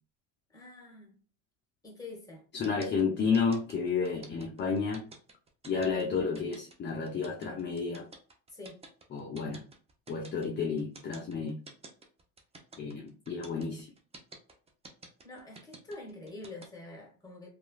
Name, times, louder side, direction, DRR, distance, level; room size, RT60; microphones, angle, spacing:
voice 1, 0.5-1.1 1.8-2.4 8.5-8.8 15.2-17.5, left 2 dB, 10° left, 1.3 m, -46 dB
voice 2, 2.5-5.1 5.7-8.1 9.1-9.6 10.1-11.6 12.8-13.9, left 5 dB, 30° left, 0.6 m, -31 dB
sound 1, 2.6-16.7, right 3 dB, 15° right, 0.6 m, -50 dB
3.0 x 2.4 x 2.3 m
supercardioid pair, 95°, 38 cm